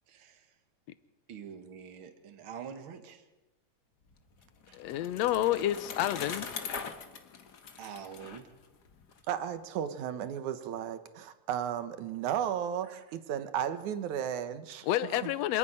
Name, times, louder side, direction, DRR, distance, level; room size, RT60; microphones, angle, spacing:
voice 1, 0.1-0.4 1.3-3.2 4.7-4.8 7.8-8.5, right 7 dB, 45° right, 6 dB, 2.1 m, -45 dB
Bicycle, 4.1-9.2, left 6 dB, 50° left, 1.2 m, -42 dB
voice 2, 4.7-6.5 14.8-15.6, left 13 dB, 75° left, 15 dB, 1.6 m, -29 dB
voice 3, 9.3-15.3, right 9 dB, 70° right, 11 dB, 2.4 m, -34 dB
26.5 x 10.0 x 9.9 m, 1.1 s
omnidirectional pair, 3.8 m